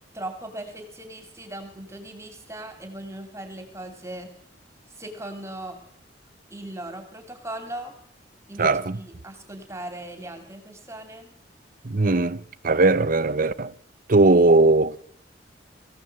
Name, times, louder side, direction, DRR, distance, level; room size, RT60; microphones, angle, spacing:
voice 1, 0.1-4.3 5.0-5.8 6.5-7.9 8.5-11.3, right 1 dB, 15° right, 2.8 m, -38 dB
voice 2, 8.6-9.0 11.8-12.4 12.6-13.7 14.1-15.0, right 2 dB, 50° right, 0.8 m, -19 dB
21.5 x 15.5 x 7.8 m
head